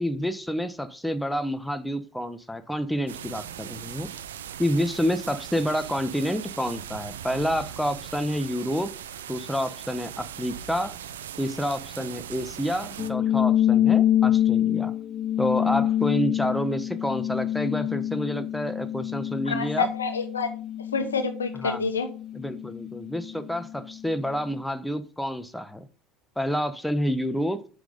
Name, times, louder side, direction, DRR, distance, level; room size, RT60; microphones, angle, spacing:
voice 1, 0.0-4.1 4.6-8.9 9.3-11.0 11.4-14.9 15.4-19.9 21.6-21.8 22.3-25.8 26.4-27.6, equal, 5° left, 11 dB, 1.2 m, -28 dB
sound 1, 3.1-13.1, right 9 dB, 80° right, 0.6 m, -39 dB
sound 2, 13.0-23.9, left 11 dB, 40° left, 0.5 m, -26 dB
voice 2, 19.5-20.5 20.9-22.1, left 4 dB, 90° left, 9 dB, 1.1 m, -27 dB
8.2 x 6.1 x 5.2 m, 0.39 s
hypercardioid pair, 70°, 0 cm